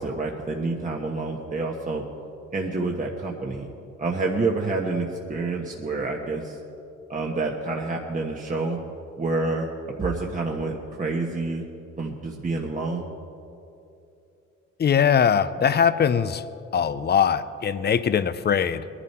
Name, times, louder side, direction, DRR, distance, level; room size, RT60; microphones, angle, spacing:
voice 1, 0.0-2.0 2.5-3.7 4.0-6.6 7.1-8.8 9.2-9.7 10.0-11.6 12.0-13.0, right 3 dB, 25° right, -1 dB, 1.3 m, -28 dB
voice 2, 14.8-16.4 16.7-18.9, left 7 dB, 35° left, 14 dB, 0.6 m, -21 dB
20.5 x 11.5 x 4.3 m, 2.8 s
cardioid pair, 90°, 30 cm